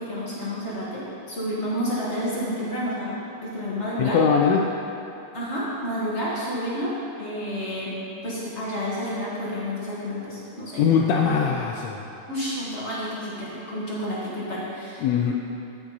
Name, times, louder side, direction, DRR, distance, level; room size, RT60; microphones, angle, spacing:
voice 1, 0.0-4.2 5.3-7.9 8.2-10.8 12.3-15.0, equal, 30° left, -7 dB, 1.4 m, -30 dB
voice 2, 4.0-4.6 10.8-12.0 15.0-15.3, left 6 dB, 75° left, 0 dB, 1.7 m, -21 dB
12.5 x 5.9 x 4.0 m, 2.8 s
omnidirectional pair, 3.3 m